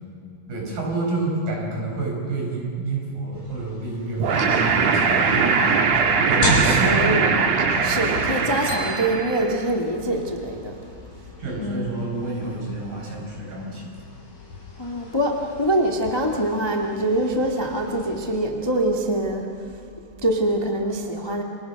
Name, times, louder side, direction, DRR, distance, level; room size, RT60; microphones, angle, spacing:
voice 1, 0.5-7.1 11.4-13.9, right 3 dB, 75° right, -2 dB, 7.4 m, -29 dB
sound 1, 3.3-18.4, left 3 dB, 70° left, 6.6 m, -35 dB
sound 2, 4.2-9.6, right 5 dB, 55° right, 2.5 m, -21 dB
voice 2, 6.4-7.4 7.8-10.8 11.6-11.9 14.8-19.5 20.2-21.4, right 1 dB, 15° left, 1 dB, 0.9 m, -24 dB
sound 3, 8.7-10.6, left 2 dB, 90° left, 6.2 m, -40 dB
30.0 x 26.0 x 6.0 m, 2.5 s
omnidirectional pair, 4.1 m